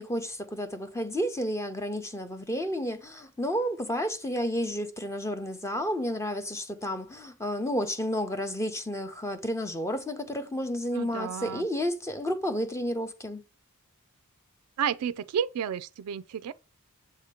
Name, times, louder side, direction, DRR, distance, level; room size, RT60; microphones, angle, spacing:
voice 1, 0.0-13.4, equal, 15° left, 0.7 m, -31 dB
voice 2, 10.9-11.7 14.8-16.5, right 8 dB, 85° right, 0.3 m, -31 dB
7.4 x 2.9 x 4.9 m
head